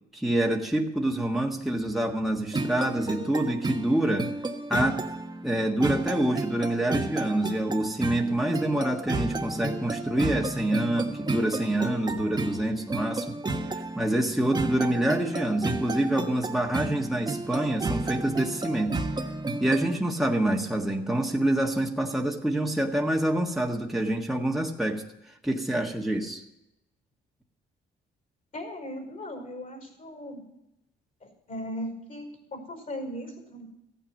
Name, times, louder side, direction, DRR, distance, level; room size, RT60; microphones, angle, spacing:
voice 1, 0.1-4.3 4.7-5.0 5.4-13.3 13.7-19.0 19.6-25.0 25.4-26.4, right 1 dB, ahead, 0 dB, 1.5 m, -26 dB
sound 1, 2.5-20.0, right 2 dB, 20° right, 1.2 m, -32 dB
voice 2, 28.5-30.4 31.2-33.6, equal, 45° left, 3 dB, 5.2 m, -38 dB
15.0 x 9.1 x 6.5 m, 0.88 s
cardioid pair, 90°, 20 cm